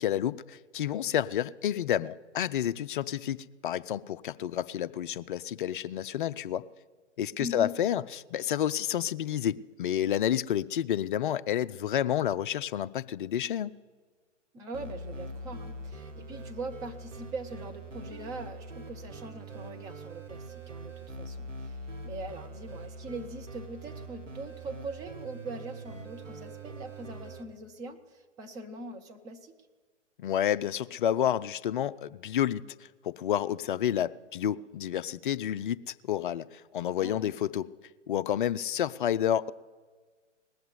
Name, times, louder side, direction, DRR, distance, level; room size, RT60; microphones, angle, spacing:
voice 1, 0.0-3.4 3.6-6.6 7.2-13.8 30.2-37.7 38.1-39.5, left 10 dB, 45° left, 14 dB, 0.5 m, -30 dB
voice 2, 7.4-7.7 14.5-29.5 37.0-37.3, right 2 dB, 10° right, 4 dB, 0.5 m, -42 dB
sound 1, 14.7-27.4, right 2 dB, 85° right, 1.5 m, -43 dB
19.0 x 8.0 x 9.5 m, 1.5 s
figure-of-eight pair, 125°, 37 cm